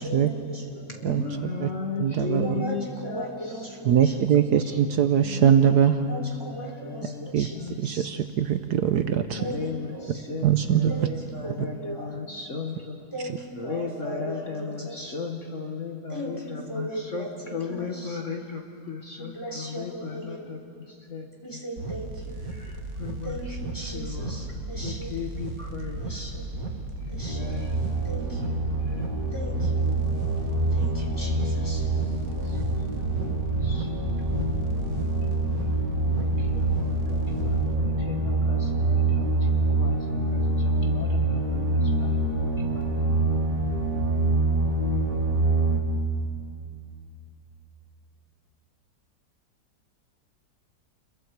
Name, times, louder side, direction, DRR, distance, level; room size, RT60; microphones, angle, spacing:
voice 1, 0.0-0.9 2.2-4.1 6.0-8.1 9.4-10.2 10.9-12.2 13.1-15.2 16.1-18.2 19.2-20.6 21.4-22.4 23.2-25.1 26.0-26.5 27.1-27.6 28.0-28.5 29.3-29.9 30.6-31.9, right 1 dB, 15° left, -2 dB, 3.2 m, -38 dB
voice 2, 0.9-3.3 4.6-4.7 5.2-6.2 6.6-7.8 9.3-13.0 13.6-18.6 18.9-20.6 21.1-21.3 22.5-23.4 23.9-24.4 24.8-26.2 27.0-27.8 28.4-29.2 29.7-30.4 31.5-31.6 32.2-32.9 33.2-35.1 36.2-39.4 39.8-40.6 40.8-42.1 42.4-43.0, left 5 dB, 45° left, 2 dB, 1.5 m, -36 dB
voice 3, 2.0-2.6 3.8-6.0 7.3-7.5 7.8-9.4 10.4-10.9, right 9 dB, 70° right, 8 dB, 1.2 m, -22 dB
sound 1, 21.8-37.8, right 2 dB, 50° right, 1.8 m, -35 dB
sound 2, 27.3-45.8, right 2 dB, 30° right, 2.5 m, -25 dB
29.5 x 22.0 x 4.6 m, 2.4 s
omnidirectional pair, 2.0 m